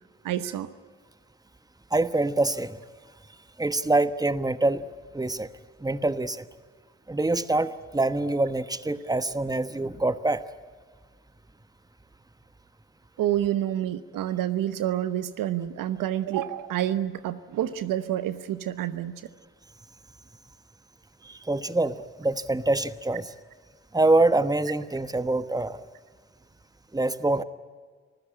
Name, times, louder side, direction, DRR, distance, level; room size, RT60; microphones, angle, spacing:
voice 1, 0.2-0.7 13.2-19.2, right 12 dB, 75° right, 13 dB, 0.9 m, -28 dB
voice 2, 1.9-2.8 3.6-4.8 5.1-5.5 5.8-6.5 7.1-10.4 21.2-23.3 23.9-25.8 26.9-27.4, right 2 dB, 10° right, 12 dB, 1.2 m, -25 dB
25.5 x 15.0 x 9.9 m, 1.5 s
hypercardioid pair, 40°, 33 cm